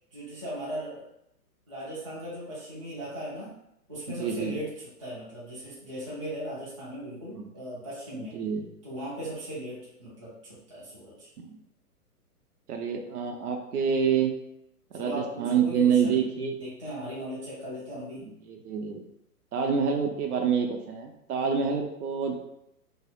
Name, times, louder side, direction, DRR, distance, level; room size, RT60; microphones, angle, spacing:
voice 1, 0.1-1.1 1.7-3.5 3.9-4.7 5.0-8.4 8.8-11.3 14.9-16.2 16.6-18.2, equal, 25° right, -9 dB, 0.3 m, -38 dB
voice 2, 4.1-4.6 7.3-7.5 8.2-8.7 11.4-11.6 12.7-14.3 14.9-16.6 18.2-19.0 19.5-22.4, right 6 dB, 70° right, 3 dB, 0.6 m, -27 dB
2.7 x 2.1 x 2.4 m, 0.80 s
hypercardioid pair, 145°, 47 cm